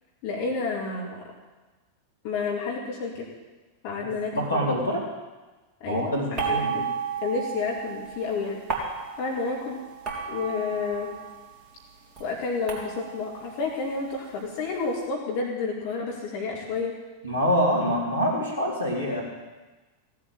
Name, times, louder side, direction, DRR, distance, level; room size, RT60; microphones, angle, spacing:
voice 1, 0.2-1.2 2.2-3.3 3.8-4.8 5.8-6.9 7.2-9.8 10.3-11.1 12.2-16.9, left 4 dB, 50° left, -1 dB, 2.7 m, -30 dB
voice 2, 4.0-5.0 5.9-6.9 17.2-19.2, equal, 85° left, -3 dB, 4.1 m, -26 dB
sound 1, 6.4-11.6 11.9-14.8, right 5 dB, 25° right, 3.7 m, -34 dB
16.5 x 8.4 x 9.0 m, 1.2 s
figure-of-eight pair, 90°, 0 cm